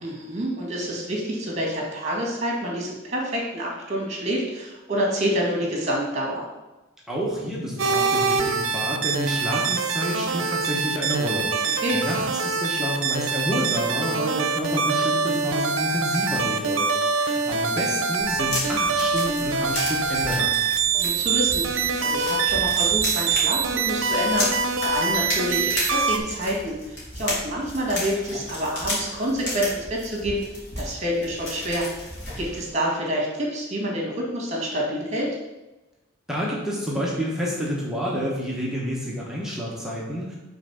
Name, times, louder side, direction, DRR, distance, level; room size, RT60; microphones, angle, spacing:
voice 1, 0.0-6.4 11.8-12.0 20.9-21.7 22.0-30.4 30.8-31.9 32.4-35.3, equal, 35° right, -3 dB, 2.1 m, -27 dB
voice 2, 7.1-20.7 36.3-40.4, equal, ahead, -5 dB, 1.1 m, -29 dB
sound 1, 7.8-26.2, right 5 dB, 70° right, 0.6 m, -24 dB
sound 2, 18.2-32.7, left 1 dB, 60° left, 2.5 m, -33 dB
5.8 x 4.1 x 5.7 m, 1.1 s
head